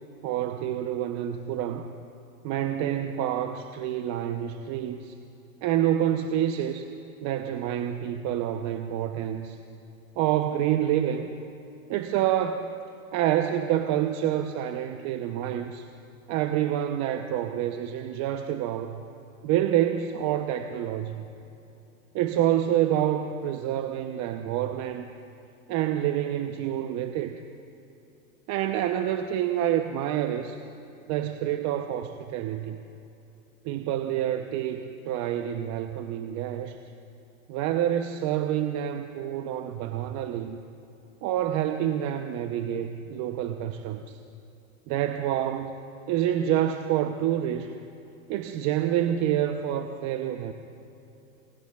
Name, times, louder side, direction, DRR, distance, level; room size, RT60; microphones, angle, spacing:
voice 1, 0.2-1.9 2.4-5.1 5.6-6.8 7.2-9.6 10.2-11.3 11.9-12.7 13.1-15.9 16.3-19.0 19.4-21.3 22.1-25.1 25.7-27.4 28.5-30.6 31.1-32.8 33.6-36.8 37.5-40.6 41.2-44.2 44.9-45.8 46.1-47.7 48.3-50.5, right 11 dB, 40° right, 6 dB, 0.8 m, -27 dB
30.0 x 18.0 x 2.4 m, 2.9 s
hypercardioid pair, 120°, 43 cm